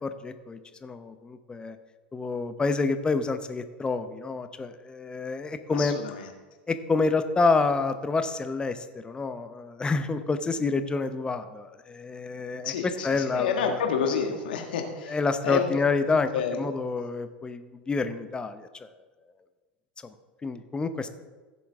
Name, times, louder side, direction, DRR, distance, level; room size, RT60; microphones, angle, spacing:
voice 1, 0.0-1.8 2.1-6.0 6.7-8.8 9.0-12.7 13.0-13.8 15.1-16.3 16.6-18.9 20.4-21.1, left 4 dB, 15° left, 10 dB, 0.8 m, -28 dB
voice 2, 5.7-6.3 12.6-16.7, left 6 dB, 70° left, 4 dB, 1.5 m, -30 dB
15.5 x 7.1 x 3.6 m, 1.3 s
figure-of-eight pair, 80°, 5 cm